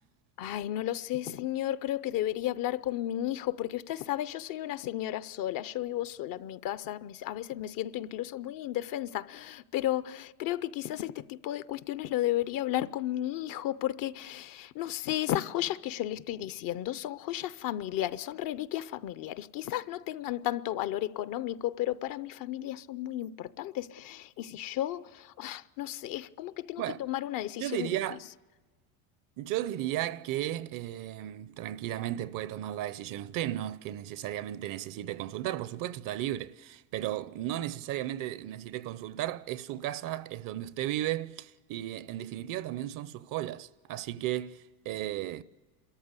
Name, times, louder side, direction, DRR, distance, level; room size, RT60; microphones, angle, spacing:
voice 1, 0.4-27.9, left 13 dB, 50° left, 0.7 m, -33 dB
voice 2, 27.6-28.2 29.4-45.4, right 13 dB, 50° right, 0.7 m, -35 dB
30.0 x 14.0 x 8.2 m
supercardioid pair, 110°, 44 cm